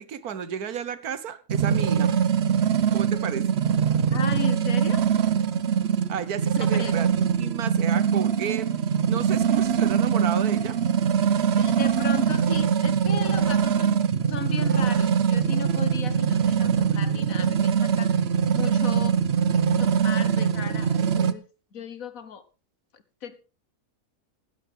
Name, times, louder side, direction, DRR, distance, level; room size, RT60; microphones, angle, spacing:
voice 1, 0.0-2.1 2.9-3.5 6.1-10.8, right 8 dB, 75° right, 15 dB, 1.5 m, -32 dB
sound 1, 1.5-21.3, right 7 dB, 50° right, 0.9 m, -23 dB
voice 2, 4.1-5.1 6.7-6.9 11.5-18.2 18.5-19.2 19.5-21.4 21.7-22.4 22.9-23.4, left 7 dB, 65° left, 13 dB, 1.6 m, -36 dB
16.5 x 11.5 x 3.5 m, 0.32 s
omnidirectional pair, 1.6 m